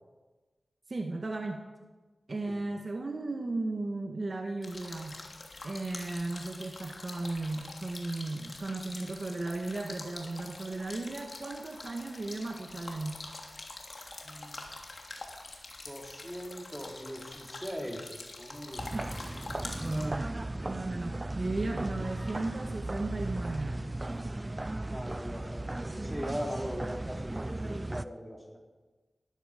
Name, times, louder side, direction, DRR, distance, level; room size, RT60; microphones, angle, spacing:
voice 1, 0.9-1.7 2.3-5.2 5.6-13.2 18.9-19.2 19.6-20.3 20.7-24.0, right 2 dB, 55° right, 3 dB, 1.8 m, -36 dB
sound 1, 4.6-20.1, left 2 dB, 65° left, 2.9 m, -45 dB
voice 2, 14.2-14.6 15.9-18.9 24.0-24.3 24.9-28.6, equal, 5° right, -1 dB, 4.2 m, -40 dB
sound 2, 18.8-28.0, right 2 dB, 30° right, 0.6 m, -36 dB
19.0 x 14.0 x 5.4 m, 1.2 s
cardioid pair, 50°, 0 cm